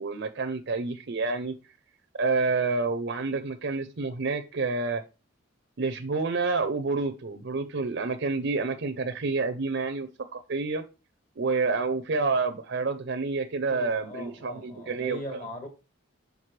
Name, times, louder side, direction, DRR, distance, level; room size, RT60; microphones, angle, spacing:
voice 1, 0.0-1.5 2.1-5.0 5.8-10.8 11.4-15.4, right 3 dB, 55° right, 0.6 m, -28 dB
voice 2, 13.7-15.7, left 1 dB, 40° left, 1.6 m, -40 dB
5.9 x 5.3 x 3.2 m
head